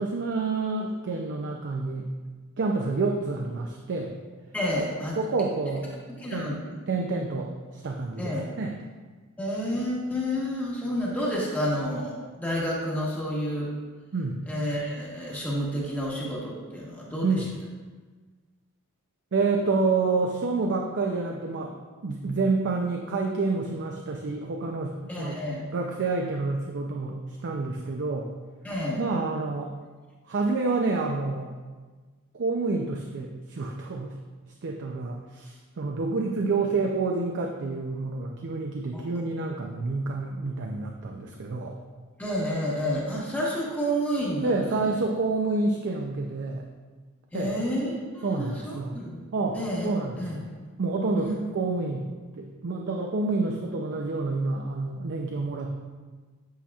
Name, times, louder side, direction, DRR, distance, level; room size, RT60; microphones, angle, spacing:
voice 1, 0.0-2.1 2.6-4.1 5.2-5.9 6.3-6.5 6.9-8.8 14.1-14.4 17.2-17.5 19.3-21.7 22.0-25.4 25.7-28.3 29.0-29.7 30.3-31.5 32.3-34.1 34.6-41.8 44.4-46.6 47.3-47.6 48.2-49.0 49.3-50.4 50.8-52.1 52.4-55.7, right 3 dB, 55° right, 1 dB, 0.5 m, -28 dB
voice 2, 4.5-5.2 6.1-6.6 8.2-8.4 9.4-13.7 14.5-17.3 25.1-25.7 28.6-29.0 38.9-39.0 42.2-44.9 47.3-49.2 49.5-49.9 50.2-50.4 51.2-51.3, equal, 10° left, -5 dB, 1.1 m, -30 dB
8.4 x 5.7 x 2.4 m, 1.4 s
head